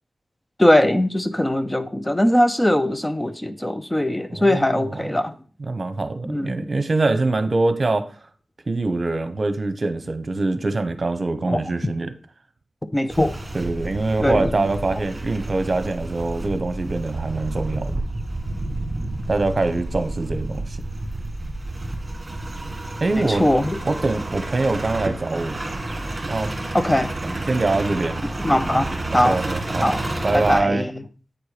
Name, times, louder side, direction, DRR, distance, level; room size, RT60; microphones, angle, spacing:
voice 1, 0.6-5.3 6.3-6.7 11.5-11.6 12.9-13.4 14.2-14.5 14.9-15.0 23.2-23.8 26.7-27.1 28.4-29.4 29.8-30.0 30.3-31.0, left 1 dB, 15° left, 0.5 m, -21 dB
voice 2, 4.3-4.9 5.7-8.0 8.7-12.1 13.5-18.0 19.3-20.8 23.0-23.4 23.8-25.6 26.3-26.5 27.5-28.2 29.2-29.9 30.2-30.8, right 2 dB, 45° right, 1.0 m, -24 dB
sound 1, 13.1-30.6, right 2 dB, 30° right, 1.9 m, -30 dB
8.8 x 4.5 x 5.1 m
wide cardioid pair, 75°, 0 cm